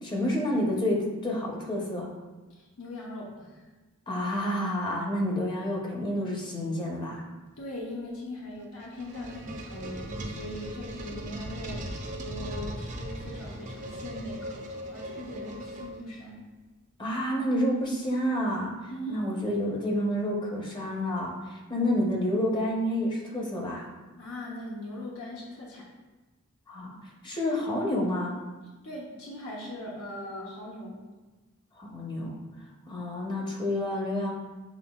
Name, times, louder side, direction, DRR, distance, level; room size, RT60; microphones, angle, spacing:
voice 1, 0.0-2.1 4.1-7.2 17.0-23.9 26.7-27.0 27.2-28.4 31.8-32.4 32.9-34.3, left 1 dB, 20° left, -1 dB, 0.8 m, -29 dB
voice 2, 2.5-3.6 7.6-16.4 18.9-19.2 24.2-25.9 28.8-31.0, left 1 dB, 80° left, -4 dB, 0.9 m, -40 dB
sound 1, 8.6-16.3, right 1 dB, 40° right, 0.5 m, -39 dB
5.9 x 3.8 x 2.3 m, 1.2 s
head